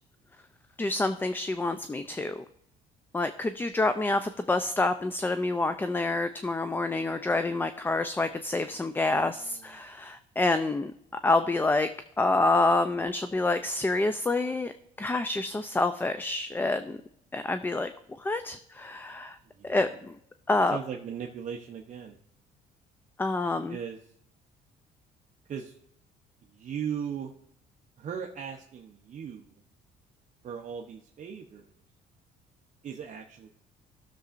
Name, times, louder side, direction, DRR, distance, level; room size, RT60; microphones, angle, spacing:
voice 1, 0.8-2.4 3.1-10.9 11.2-11.9 12.2-14.7 15.0-17.0 17.3-17.9 18.2-19.4 19.6-20.2 20.5-20.8 23.2-23.8, left 2 dB, 10° left, 10 dB, 0.4 m, -27 dB
voice 2, 9.3-9.6 19.6-19.9 20.7-22.2 23.7-24.0 25.5-25.7 26.5-27.3 28.0-29.5 30.4-31.7 32.8-33.5, right 7 dB, 45° right, 2 dB, 0.8 m, -38 dB
15.5 x 6.8 x 2.5 m, 0.73 s
cardioid pair, 110°, 17 cm